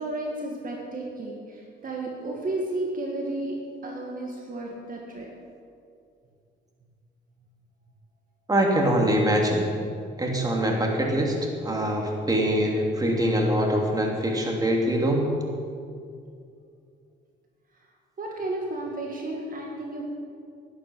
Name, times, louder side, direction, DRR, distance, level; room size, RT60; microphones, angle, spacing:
voice 1, 0.0-3.6 3.8-5.3 18.2-20.0, right 2 dB, 45° right, -1 dB, 2.0 m, -32 dB
voice 2, 8.5-9.7 10.2-11.4 11.6-15.3, right 1 dB, 20° right, 0 dB, 2.6 m, -23 dB
11.0 x 11.0 x 6.3 m, 2.4 s
cardioid pair, 90°, 20 cm